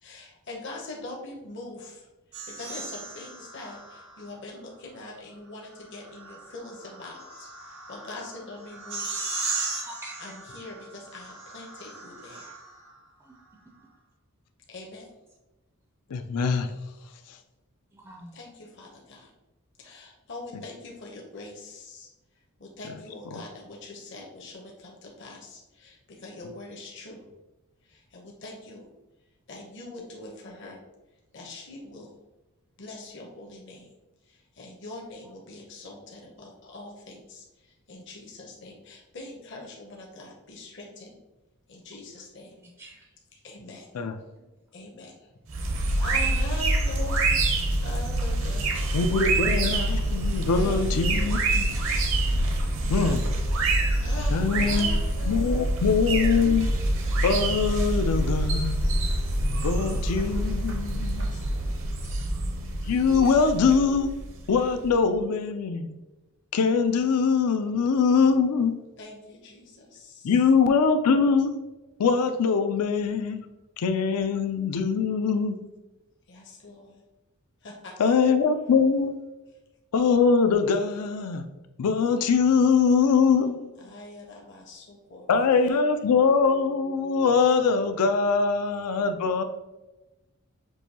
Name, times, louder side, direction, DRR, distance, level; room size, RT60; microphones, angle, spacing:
voice 1, 0.0-2.1 2.5-9.1 10.2-12.6 14.7-15.1 18.3-19.3 19.8-22.1 22.6-27.2 27.8-28.9 29.5-30.8 31.3-32.1 32.8-33.9 34.2-41.1 41.7-42.6 43.4-44.0 44.7-47.4 47.8-48.9 50.4-51.4 54.0-55.7 61.1-62.2 69.0-70.3 76.3-77.0 77.6-78.1 83.8-85.7, left 2 dB, 55° left, -1 dB, 0.7 m, -43 dB
sound 1, 2.3-4.3 5.7-12.9, right 3 dB, 80° right, 1.4 m, -37 dB
voice 2, 9.8-10.4 13.2-13.3 17.9-18.4 42.6-43.4 44.2-44.5, right 1 dB, 15° right, -1 dB, 0.4 m, -47 dB
voice 3, 16.1-16.7 23.3-23.4 43.9-44.1 48.9-51.7 52.9-53.3 54.3-54.9 55.3-56.7 57.2-58.8 59.6-61.3 62.9-64.1 64.5-66.0 66.5-68.7 70.2-71.5 72.0-73.4 73.8-75.6 78.0-79.2 79.9-81.4 81.8-83.8 85.3-89.4, left 5 dB, 90° left, 8 dB, 0.4 m, -23 dB
sound 2, 45.5-64.9, right 1 dB, 60° right, 0.6 m, -26 dB
6.2 x 2.6 x 2.7 m, 1.1 s
head